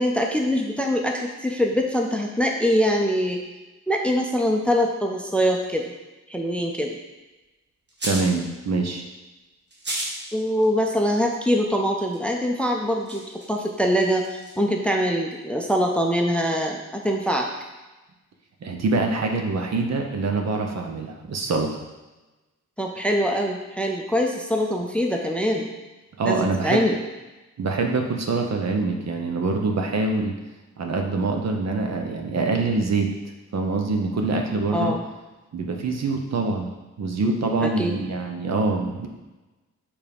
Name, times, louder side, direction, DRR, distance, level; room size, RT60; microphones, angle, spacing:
voice 1, 0.0-3.4 3.9-5.9 6.3-7.0 10.3-17.5 22.8-25.7 26.2-27.0 34.7-35.0 37.6-37.9, equal, 5° left, 1 dB, 0.5 m, -23 dB
sound 1, 7.9-8.4 9.7-10.2 10.5-10.7 12.1-12.2 12.7-14.6, right 1 dB, 35° right, 1.4 m, -33 dB
voice 2, 8.0-9.0 18.6-21.8 26.2-26.8 27.6-30.3 30.8-33.1 33.5-34.9 35.5-36.7 37.0-39.1, right 3 dB, 60° right, 3 dB, 0.9 m, -25 dB
7.2 x 3.5 x 5.3 m, 1.1 s
wide cardioid pair, 175°, 29 cm